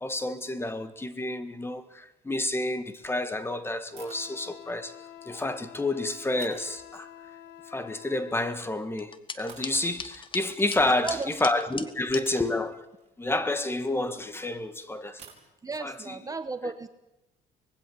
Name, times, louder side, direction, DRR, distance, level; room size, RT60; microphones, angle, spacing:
voice 1, 0.0-5.0 5.3-7.1 7.7-12.9 13.2-15.2 15.8-16.2, left 2 dB, 15° left, 1.8 m, -29 dB
Wind instrument woodwind instrument, 3.9-8.4, left 11 dB, 85° left, 1.5 m, -48 dB
sound 1, 4.0-4.3 5.2-5.7 6.4-7.3 8.5-8.8 9.5-10.1 11.6-11.7 12.2-14.4 15.2-15.4, right 6 dB, 40° right, 5.8 m, -52 dB
sound 2, 9.0-12.2, left 5 dB, 30° left, 1.6 m, -40 dB
voice 2, 10.8-11.3 15.6-16.9, right 4 dB, 20° right, 1.2 m, -34 dB
25.0 x 20.5 x 8.0 m
cardioid pair, 110°, 17 cm